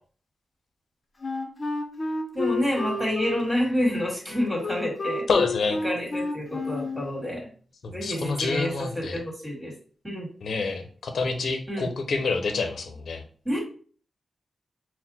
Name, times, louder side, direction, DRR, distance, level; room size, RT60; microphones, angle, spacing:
Wind instrument woodwind instrument, 1.2-7.1, left 3 dB, 35° left, 0.8 m, -31 dB
voice 1, 2.3-5.3 5.8-7.5 7.9-9.7 10.0-10.3 11.7-11.9 13.5-13.6, equal, 10° right, -2 dB, 1.9 m, -28 dB
voice 2, 5.3-5.8 7.8-9.2 10.4-13.2, left 4 dB, 70° left, 5 dB, 0.6 m, -27 dB
4.2 x 2.1 x 4.1 m, 0.44 s
wide cardioid pair, 90°, 0 cm